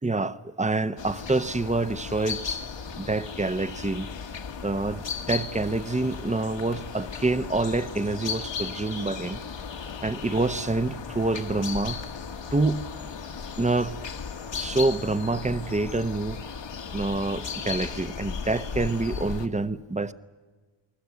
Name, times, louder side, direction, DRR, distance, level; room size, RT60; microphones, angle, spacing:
voice 1, 0.0-2.6 3.0-4.1 4.6-9.4 10.0-12.0 12.5-12.8 13.6-14.0 14.5-16.4 16.9-20.1, right 2 dB, 15° right, 0.7 m, -27 dB
sound 1, 1.0-19.5, left 6 dB, 70° left, 1.6 m, -36 dB
29.0 x 20.5 x 8.2 m
wide cardioid pair, 145°, 46 cm